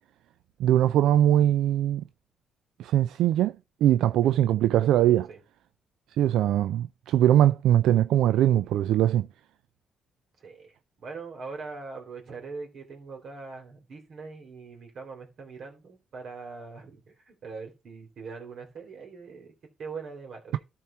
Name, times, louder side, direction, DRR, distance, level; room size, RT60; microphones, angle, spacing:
voice 1, 0.6-2.0 2.8-3.5 3.8-5.3 6.2-9.3, right 12 dB, 85° right, 0.3 m, -21 dB
voice 2, 10.4-19.5 19.8-20.6, right 4 dB, 60° right, 3.4 m, -42 dB
12.5 x 4.4 x 4.4 m
cardioid pair, 90°, 0 cm